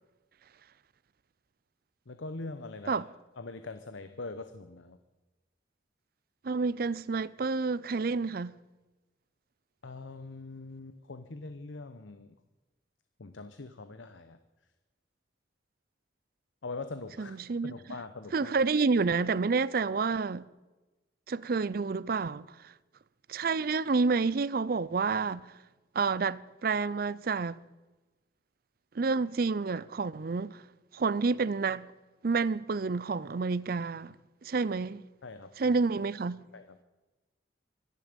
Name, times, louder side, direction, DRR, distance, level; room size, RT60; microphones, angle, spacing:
voice 1, 2.1-3.0 3.4-5.0 9.8-12.3 13.2-14.4 16.6-17.4 17.6-18.5 35.2-35.8 36.5-36.8, left 3 dB, 90° left, 0.9 m, -42 dB
voice 2, 6.4-8.5 17.2-17.7 18.3-20.5 21.3-22.5 23.3-25.5 25.9-27.6 28.9-30.6 30.9-31.9 32.2-34.2 34.4-35.0 35.6-36.4, right 4 dB, 50° right, 0.5 m, -29 dB
24.5 x 10.5 x 5.2 m
head